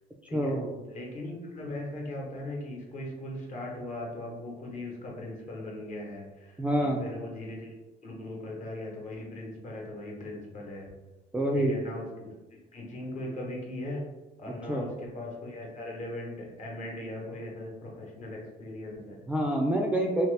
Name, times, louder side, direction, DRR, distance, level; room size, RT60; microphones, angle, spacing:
voice 1, 0.3-0.8 6.6-7.0 11.3-11.8 14.7-14.9 19.3-20.3, right 1 dB, 5° right, -1 dB, 0.3 m, -27 dB
voice 2, 0.9-7.7 8.0-10.9 11.5-12.3 12.7-14.1 14.4-19.2, left 1 dB, 45° left, -1 dB, 1.0 m, -39 dB
2.8 x 2.4 x 3.3 m, 1.1 s
cardioid pair, 110°, 17 cm